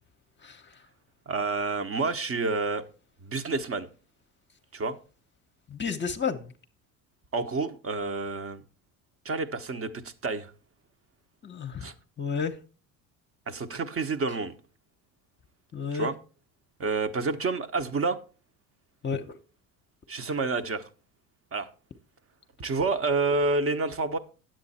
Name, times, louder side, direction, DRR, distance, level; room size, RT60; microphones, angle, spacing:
voice 1, 0.4-0.8 5.7-6.5 11.4-11.9 12.2-12.6 15.7-16.1 19.0-19.4, left 6 dB, 25° left, 0.9 m, -32 dB
voice 2, 1.3-2.8 3.2-3.9 4.7-5.0 7.3-8.6 9.2-10.5 11.8-11.9 13.5-14.5 15.9-16.1 16.8-18.2 20.1-20.9 21.5-21.7 22.6-24.2, right 3 dB, 30° right, 1.1 m, -29 dB
9.6 x 7.8 x 4.2 m
hypercardioid pair, 75°, 42 cm